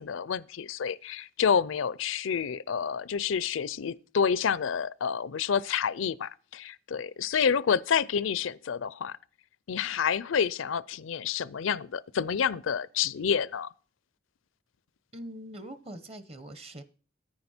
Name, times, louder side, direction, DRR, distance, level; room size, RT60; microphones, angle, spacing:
voice 1, 0.0-9.2 9.7-13.7, left 7 dB, 80° left, 0.5 m, -28 dB
voice 2, 15.1-16.8, right 1 dB, 30° right, 1.0 m, -43 dB
9.9 x 9.6 x 4.4 m
head